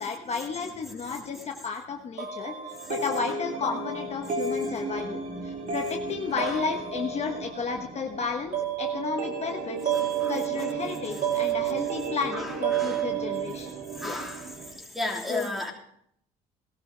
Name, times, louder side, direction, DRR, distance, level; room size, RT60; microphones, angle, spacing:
voice 1, 0.0-2.5 2.9-9.9 10.3-13.7 14.0-14.2 15.3-15.5, left 5 dB, 40° left, 3 dB, 1.3 m, -33 dB
sound 1, 2.2-14.8, right 6 dB, 55° right, 2.6 m, -31 dB
voice 2, 10.0-10.3 12.3-13.1 14.0-14.5 14.9-15.7, left 1 dB, ahead, 0 dB, 3.1 m, -34 dB
17.5 x 12.5 x 3.4 m, 0.70 s
cardioid pair, 110°, 17 cm